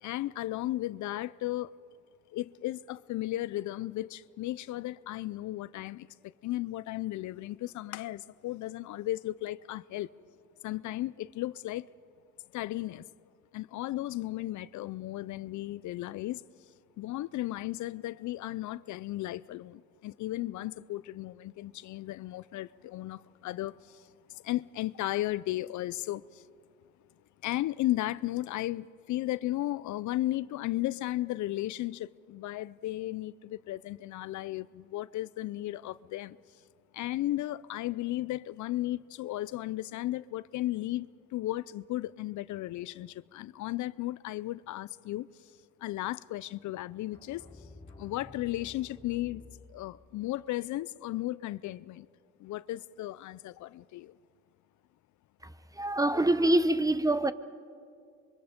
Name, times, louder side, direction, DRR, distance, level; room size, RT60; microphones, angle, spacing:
voice 1, 0.0-1.8 2.3-6.1 6.4-10.1 10.6-11.9 12.5-13.1 13.5-16.4 17.0-26.4 27.4-36.4 36.9-45.3 45.8-47.7 48.0-49.4 49.7-52.1 52.4-54.1, left 15 dB, 75° left, 0.5 m, -35 dB
sound 1, 47.1-50.3, left 3 dB, 20° left, 5.0 m, -51 dB
voice 2, 55.8-57.3, right 1 dB, 10° right, 0.7 m, -25 dB
26.0 x 23.5 x 5.1 m
cardioid pair, 90°, 30 cm